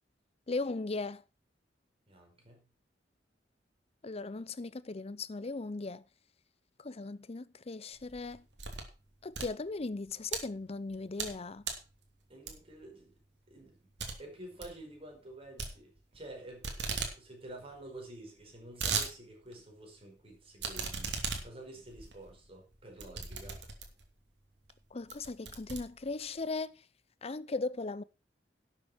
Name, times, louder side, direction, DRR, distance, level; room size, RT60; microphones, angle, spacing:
voice 1, 0.5-1.2 4.0-6.0 6.8-8.4 9.2-11.7 24.9-26.7 27.2-28.0, left 3 dB, 35° left, 0.6 m, -38 dB
voice 2, 2.1-2.6 12.3-13.2 13.5-13.8 14.2-23.6, right 1 dB, 35° right, 5.3 m, -50 dB
sound 1, 8.0-8.9 9.2-10.4 10.9-11.4 11.6-11.9 12.5-12.8 13.2-13.3 13.6-13.7 14.0-14.1 14.4-14.7 15.6-16.3 16.6-17.1 17.5-17.6 17.7-17.8 18.4-19.1 19.5-19.6 20.6-24.1 24.7-24.8 25.1-26.3, right 5 dB, 85° right, 2.9 m, -37 dB
12.0 x 7.6 x 5.7 m
head